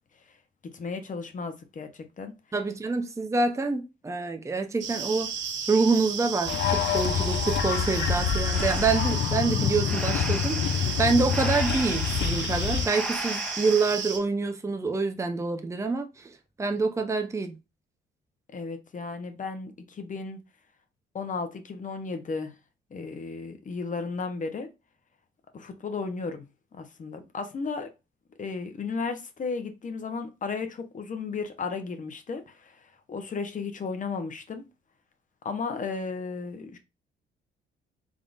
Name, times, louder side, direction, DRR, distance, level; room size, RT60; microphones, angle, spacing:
voice 1, 0.7-2.3 18.5-20.4 21.1-22.5 22.9-24.7 25.5-26.4 26.7-27.9 28.4-34.7 35.4-36.8, left 4 dB, 40° left, 0.9 m, -34 dB
voice 2, 2.5-5.3 5.7-17.6, right 4 dB, 15° right, 0.6 m, -27 dB
sound 1, 4.8-14.2, right 6 dB, 70° right, 1.0 m, -33 dB
sound 2, 6.5-12.9, left 8 dB, 65° left, 0.6 m, -27 dB
Breathing, 8.5-14.0, equal, 5° left, 0.9 m, -37 dB
3.7 x 3.6 x 2.5 m
cardioid pair, 90°, 20 cm